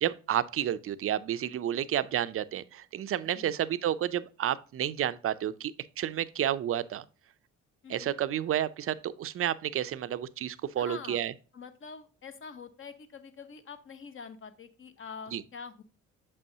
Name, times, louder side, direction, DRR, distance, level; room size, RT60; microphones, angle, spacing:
voice 1, 0.0-7.0 7.9-11.3 15.3-15.4, right 11 dB, 45° right, 0.5 m, -31 dB
voice 2, 7.8-8.1 10.8-11.2 11.5-15.8, left 5 dB, 45° left, 0.9 m, -45 dB
6.8 x 5.4 x 2.8 m
cardioid pair, 90°, 30 cm